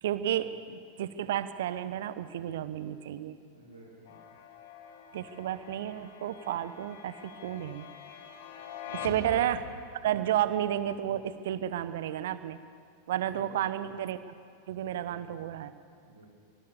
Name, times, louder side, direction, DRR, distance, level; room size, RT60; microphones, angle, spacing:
voice 1, 0.0-3.4 5.1-7.9 8.5-8.7 9.0-9.6 10.0-12.6 13.1-14.3 14.7-15.7, right 11 dB, 55° right, 14 dB, 1.1 m, -32 dB
voice 2, 3.5-4.1 8.8-9.5 13.1-13.9 14.8-15.2 16.0-16.3, right 1 dB, 85° right, -6 dB, 4.0 m, -49 dB
sound 1, 4.1-10.0, left 7 dB, 55° left, 2.3 m, -45 dB
25.0 x 20.0 x 7.0 m, 2.4 s
figure-of-eight pair, 90°, 0 cm